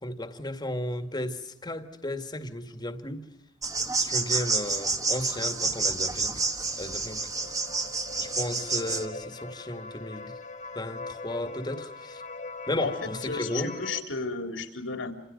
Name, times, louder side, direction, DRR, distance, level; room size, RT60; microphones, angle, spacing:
voice 1, 0.0-3.3 4.0-6.4 6.8-7.3 8.2-10.3 10.7-12.2 12.7-13.8, left 1 dB, 25° left, 2.1 m, -34 dB
sound 1, 3.6-9.1, right 3 dB, 20° right, 1.6 m, -29 dB
sound 2, 4.7-14.0, left 3 dB, 40° left, 1.5 m, -42 dB
voice 2, 12.8-15.1, left 4 dB, 80° left, 3.8 m, -33 dB
29.0 x 27.5 x 5.4 m
head